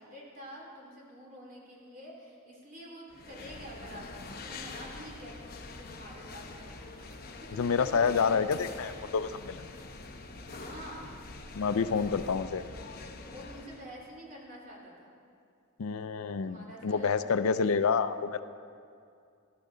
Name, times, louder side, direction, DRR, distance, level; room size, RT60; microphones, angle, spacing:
voice 1, 0.0-8.6 10.4-11.1 13.3-15.1 16.4-18.0, equal, 40° right, -2 dB, 2.6 m, -48 dB
sound 1, 3.1-13.8, left 3 dB, 45° left, 0.9 m, -45 dB
voice 2, 7.5-9.7 11.5-12.6 15.8-18.4, left 5 dB, 75° left, 12 dB, 0.5 m, -28 dB
17.0 x 12.0 x 3.8 m, 2.4 s
head